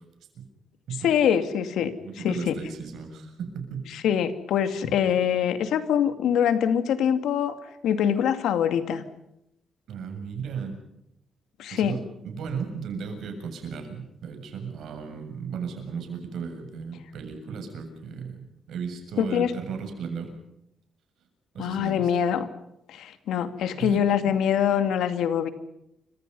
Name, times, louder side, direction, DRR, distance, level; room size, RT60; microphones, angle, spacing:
voice 1, 1.0-1.9 2.2-2.6 3.9-7.5 7.8-9.0 11.6-12.0 19.2-19.5 21.6-22.5 22.9-25.5, left 8 dB, 85° left, 9 dB, 2.5 m, -24 dB
voice 2, 2.0-3.9 9.9-10.8 11.7-20.3 21.5-22.1 23.8-24.0, right 6 dB, 70° right, 5 dB, 7.3 m, -35 dB
30.0 x 25.5 x 5.6 m, 0.81 s
cardioid pair, 140°, 0 cm